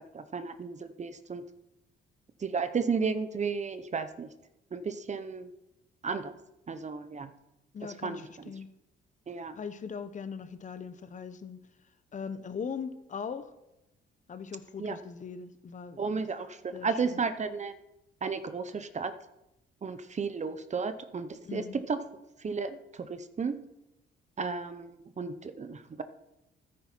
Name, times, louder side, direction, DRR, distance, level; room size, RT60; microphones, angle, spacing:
voice 1, 0.1-1.4 2.4-4.3 4.7-5.5 6.0-6.3 6.7-7.3 8.0-8.5 9.3-9.6 14.8-15.0 16.0-17.7 18.2-19.1 19.8-22.0 22.4-23.6 24.4-26.0, right 5 dB, 35° right, 10 dB, 1.0 m, -33 dB
voice 2, 7.7-8.7 9.6-11.6 12.1-13.5 14.3-16.2 16.7-17.2 21.4-21.8, left 6 dB, 40° left, 11 dB, 0.9 m, -40 dB
13.5 x 9.8 x 4.6 m, 0.89 s
cardioid pair, 90°, 20 cm